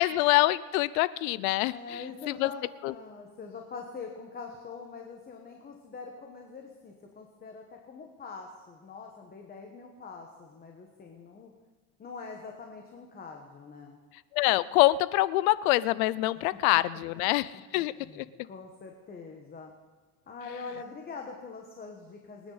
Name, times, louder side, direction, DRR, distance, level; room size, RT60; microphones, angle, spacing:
voice 1, 0.0-2.5 2.8-2.9 14.3-18.3, left 17 dB, 80° left, 18 dB, 0.7 m, -25 dB
voice 2, 1.7-11.5 12.0-14.0 16.5-16.8 17.5-19.7 20.3-22.5, left 4 dB, 20° left, 2 dB, 1.3 m, -44 dB
26.5 x 9.8 x 4.1 m, 1.4 s
cardioid pair, 145°, 42 cm